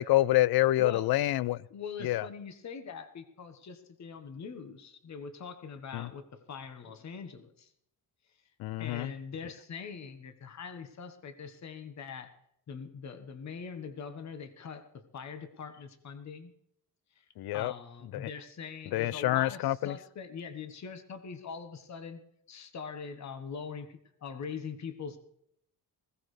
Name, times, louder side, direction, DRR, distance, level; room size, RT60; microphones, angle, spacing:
voice 1, 0.0-1.6 2.0-2.2 5.9-6.1 8.6-9.1 17.4-17.7 18.1-18.3 18.9-20.0, left 15 dB, 65° left, 0.5 m, -27 dB
voice 2, 1.7-7.7 8.8-12.3 12.7-16.5 17.2-17.3 17.5-22.2 22.5-25.2, left 6 dB, 45° left, 1.3 m, -42 dB
20.0 x 16.0 x 3.3 m
cardioid pair, 145°, 40 cm